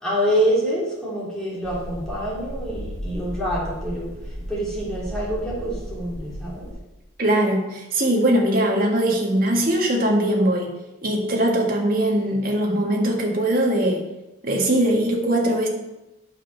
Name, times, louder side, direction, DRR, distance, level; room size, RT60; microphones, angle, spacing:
voice 1, 0.0-4.1 4.5-6.7, equal, 5° left, -7 dB, 3.4 m, -26 dB
sound 1, 1.6-6.7, equal, 20° right, 2.5 m, -34 dB
voice 2, 7.2-10.7 11.0-14.0 14.4-15.7, right 1 dB, 45° right, 0 dB, 1.8 m, -21 dB
9.0 x 6.3 x 5.9 m, 0.99 s
head